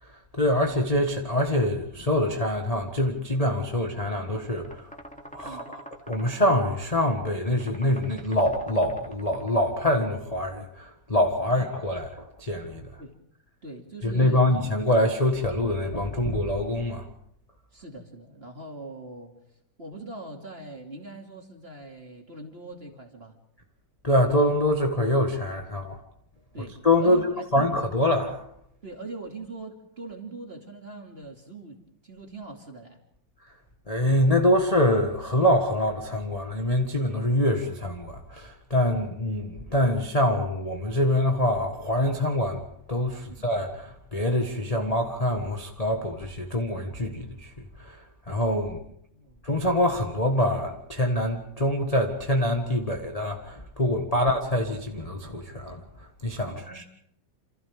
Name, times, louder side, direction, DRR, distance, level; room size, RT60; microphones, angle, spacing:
voice 1, 0.0-4.9 5.3-13.0 14.0-17.1 24.0-26.0 26.6-27.3 27.5-28.4 33.9-48.8 49.4-56.8, left 1 dB, 20° left, 1.0 m, -25 dB
sound 1, 3.9-9.7, equal, ahead, 2.7 m, -46 dB
voice 2, 13.6-14.4 17.7-19.4 19.8-23.4 26.5-27.7 28.8-33.0 49.1-49.5 54.1-54.2 56.4-56.8, right 2 dB, 20° right, 2.7 m, -41 dB
28.5 x 28.0 x 3.7 m
omnidirectional pair, 3.5 m